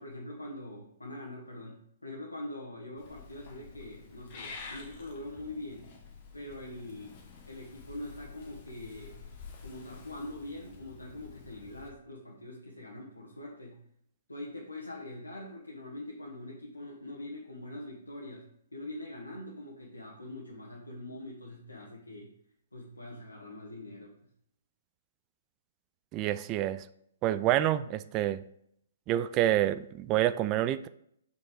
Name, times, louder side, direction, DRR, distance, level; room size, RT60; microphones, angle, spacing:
voice 1, 0.0-5.9 6.3-7.1 7.5-9.2 9.6-13.8 14.3-22.3 22.7-24.1, left 1 dB, 80° left, -3 dB, 1.2 m, -43 dB
Purr / Meow, 3.0-11.9, left 5 dB, 35° left, 1.4 m, -49 dB
voice 2, 26.1-26.8 27.2-28.4 29.1-30.9, right 12 dB, 25° right, 14 dB, 0.3 m, -27 dB
5.3 x 5.3 x 4.9 m, 0.72 s
figure-of-eight pair, 125°, 0 cm